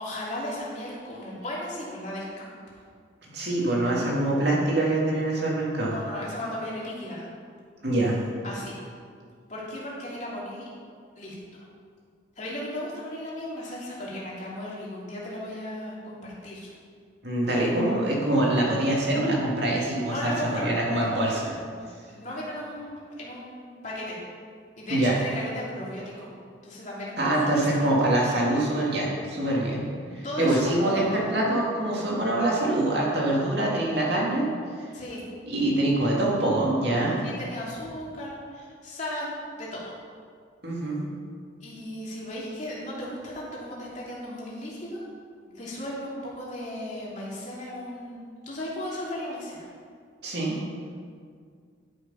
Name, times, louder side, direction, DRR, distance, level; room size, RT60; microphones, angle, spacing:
voice 1, 0.0-2.5 5.8-7.2 8.4-8.7 9.5-10.7 11.2-11.3 12.4-16.7 20.0-21.3 22.1-24.2 24.8-26.3 26.6-27.3 27.7-27.9 30.2-31.3 34.9-35.3 37.2-39.9 41.6-45.0 45.5-49.7, left 1 dB, 40° left, -6 dB, 2.8 m, -36 dB
voice 2, 3.2-5.9 7.8-8.1 17.2-21.5 24.9-25.2 27.2-34.5 35.5-37.2 40.6-41.0 50.2-50.6, right 1 dB, 55° right, -4 dB, 2.4 m, -24 dB
11.5 x 6.5 x 5.6 m, 2.1 s
head